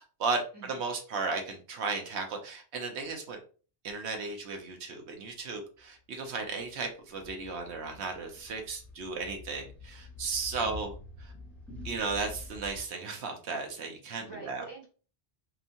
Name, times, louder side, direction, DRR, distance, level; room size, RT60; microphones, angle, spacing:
voice 1, 0.0-3.4 3.8-10.9 11.2-11.3 11.8-14.6, right 4 dB, 75° right, 4 dB, 0.9 m, -35 dB
Ambience waterwind, 6.6-12.8, left 2 dB, ahead, 0.6 m, -47 dB
voice 2, 10.6-10.9 14.2-14.9, right 3 dB, 40° right, -3 dB, 0.3 m, -47 dB
2.8 x 2.4 x 2.6 m, 0.37 s
omnidirectional pair, 1.1 m